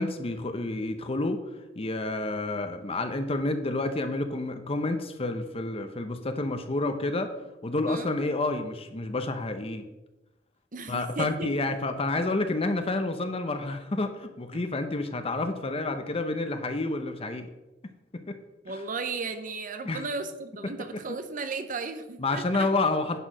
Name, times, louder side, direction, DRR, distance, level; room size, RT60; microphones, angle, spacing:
voice 1, 0.0-1.4 1.8-7.3 7.6-9.9 10.9-17.5 18.1-18.4 19.9-20.0 20.9-21.0 22.2-23.2, left 2 dB, 35° left, 8 dB, 0.8 m, -29 dB
voice 2, 10.7-11.5 14.5-14.6 18.6-22.7, right 4 dB, 45° right, 9 dB, 0.8 m, -35 dB
10.0 x 4.8 x 6.1 m, 1.0 s
head